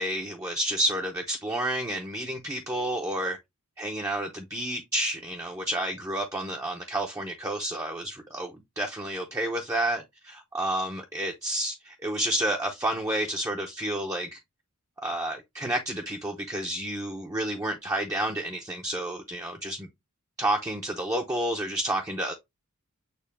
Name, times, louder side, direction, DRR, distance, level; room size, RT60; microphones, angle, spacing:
voice 1, 0.0-3.4 3.8-14.4 15.0-19.9 20.4-22.3, right 1 dB, 15° right, 0.6 m, -30 dB
6.7 x 2.2 x 3.4 m
head